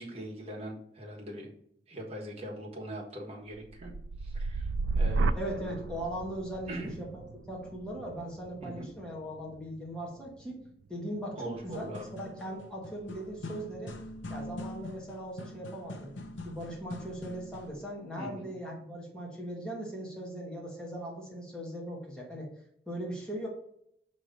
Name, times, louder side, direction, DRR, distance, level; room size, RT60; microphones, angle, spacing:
voice 1, 0.0-1.5 1.9-3.9 4.2-5.3 6.7-6.9 8.6-8.9 11.3-12.1 18.2-18.5, right 1 dB, 35° right, -2 dB, 1.4 m, -41 dB
sound 1, 3.5-11.6 12.0-12.5, right 3 dB, 90° right, 0.3 m, -35 dB
voice 2, 5.3-10.6 10.9-14.0 14.3-16.1 16.4-22.5 22.9-23.5, right 1 dB, 5° left, -3 dB, 1.4 m, -39 dB
sound 2, 11.7-17.8, left 2 dB, 85° left, 0.7 m, -44 dB
6.1 x 3.1 x 5.2 m, 0.72 s
head